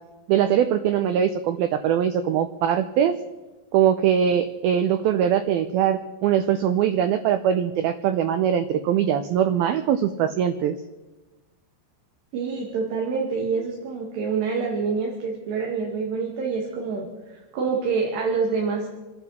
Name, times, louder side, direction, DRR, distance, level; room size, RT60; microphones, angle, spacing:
voice 1, 0.3-3.2 3.7-10.8, right 9 dB, 90° right, 9 dB, 2.1 m, -22 dB
voice 2, 12.3-18.9, right 5 dB, 70° right, -1 dB, 4.3 m, -26 dB
28.5 x 11.0 x 4.3 m, 1.1 s
omnidirectional pair, 5.2 m